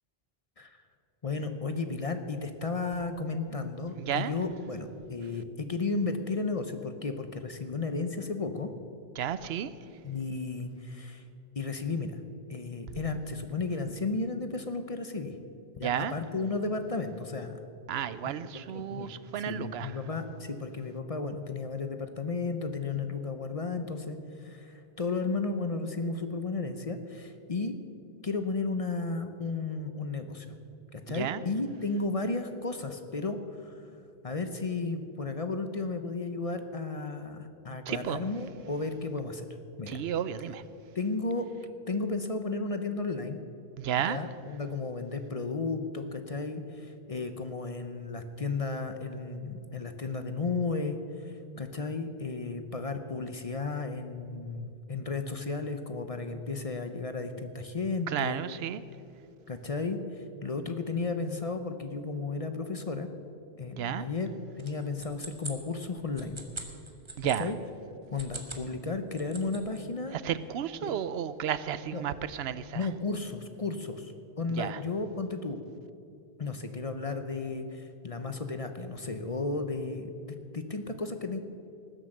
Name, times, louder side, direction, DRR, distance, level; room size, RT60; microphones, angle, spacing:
voice 1, 1.2-8.7 10.0-11.2 11.6-12.2 12.5-15.3 15.8-17.5 18.5-19.1 19.5-27.7 28.2-30.6 30.9-33.9 34.2-39.4 39.8-40.0 40.9-41.5 41.9-43.4 44.1-58.4 59.5-63.1 63.6-64.3 64.6-66.4 67.4-67.5 68.1-70.2 70.8-70.9 71.9-72.0 72.7-75.6 76.4-81.4, left 3 dB, 40° left, 8 dB, 0.8 m, -34 dB
voice 2, 3.9-4.3 9.2-9.7 12.9-13.0 15.8-16.1 17.9-20.0 31.1-31.4 37.9-38.3 39.9-40.6 43.8-44.2 58.1-58.8 63.8-64.1 67.2-67.5 70.1-72.9 74.5-74.8, right 9 dB, 85° right, 15 dB, 0.9 m, -32 dB
sound 1, 64.6-67.4 68.0-68.7 69.0-69.8, right 2 dB, 30° right, 1.4 m, -43 dB
19.0 x 7.8 x 6.5 m, 2.7 s
omnidirectional pair, 1.0 m